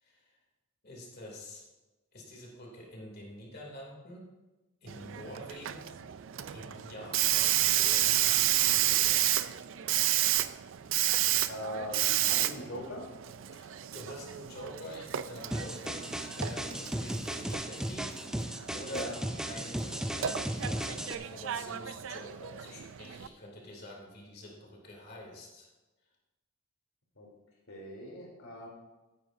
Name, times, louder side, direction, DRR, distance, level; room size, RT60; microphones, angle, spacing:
voice 1, 0.0-0.4 0.8-1.7 2.1-4.3 4.8-5.9 6.5-9.3 13.6-16.1 16.4-18.2 18.7-25.7, equal, 45° left, -1 dB, 2.7 m, -46 dB
Hiss, 4.9-23.3, right 13 dB, 65° right, 0.4 m, -31 dB
voice 2, 11.5-13.1 18.9-19.1 27.2-27.3 27.7-28.7, left 1 dB, 70° left, -1 dB, 3.3 m, -40 dB
sound 1, 15.5-21.1, right 1 dB, 5° right, 0.4 m, -36 dB
14.5 x 9.7 x 2.7 m, 1.1 s
head